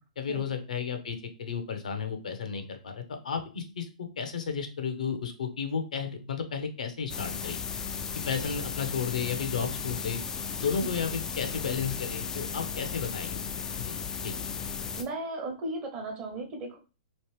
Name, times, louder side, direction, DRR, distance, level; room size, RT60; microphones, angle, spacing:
voice 1, 0.2-3.9 4.2-7.6 8.3-10.2 10.6-13.4 13.8-14.0 14.2-14.3, left 6 dB, 80° left, 6 dB, 0.8 m, -33 dB
sound 1, 7.1-15.0, left 6 dB, 15° left, 0.3 m, -35 dB
voice 2, 15.0-16.8, right 2 dB, 30° right, 3 dB, 0.9 m, -36 dB
3.1 x 2.5 x 3.2 m, 0.33 s
hypercardioid pair, 130°, 4 cm